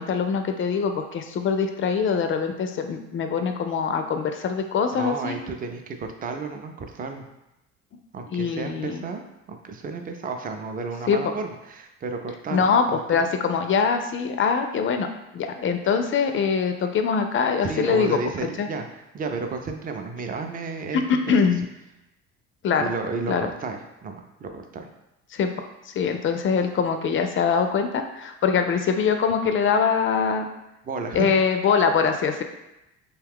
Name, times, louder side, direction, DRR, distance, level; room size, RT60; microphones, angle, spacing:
voice 1, 0.0-5.4 8.3-9.0 11.1-11.2 12.5-15.1 15.3-18.2 18.6-18.7 20.9-21.7 22.6-22.9 23.3-23.5 25.3-25.5 25.9-30.5 31.1-32.4, left 6 dB, 40° left, 6 dB, 0.4 m, -23 dB
voice 2, 4.9-7.2 8.1-12.7 13.1-13.3 17.6-21.0 22.8-24.9 30.8-31.3, right 4 dB, 25° right, 5 dB, 0.4 m, -32 dB
2.8 x 2.3 x 3.5 m, 0.93 s
supercardioid pair, 75°, 34 cm